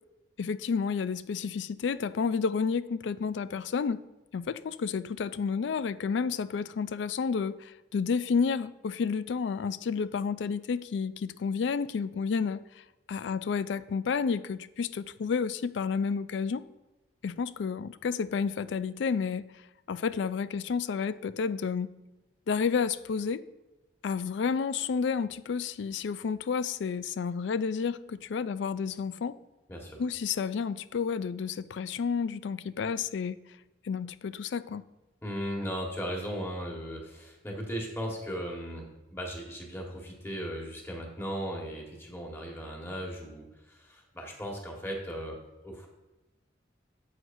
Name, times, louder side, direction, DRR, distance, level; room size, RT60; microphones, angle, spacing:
voice 1, 0.4-4.0 4.3-16.6 17.2-19.4 19.9-21.9 22.5-23.4 24.0-29.4 30.0-33.4 33.8-34.8, left 5 dB, 75° left, 15 dB, 0.4 m, -30 dB
voice 2, 29.7-30.0 35.2-45.9, equal, 15° left, 0 dB, 1.5 m, -37 dB
11.0 x 7.7 x 2.7 m, 1.0 s
head